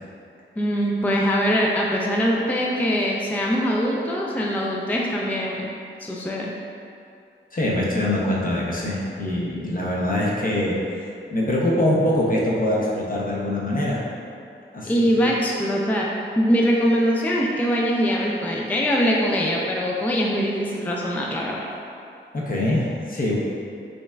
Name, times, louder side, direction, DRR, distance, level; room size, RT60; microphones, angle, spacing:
voice 1, 0.6-5.7 6.0-6.5 14.8-21.7, equal, 10° left, -2 dB, 0.3 m, -22 dB
voice 2, 7.5-10.7 11.3-14.0 14.7-15.0 22.3-23.4, left 1 dB, 45° left, -4 dB, 0.6 m, -23 dB
5.1 x 2.4 x 2.2 m, 2.5 s
wide cardioid pair, 80°, 20 cm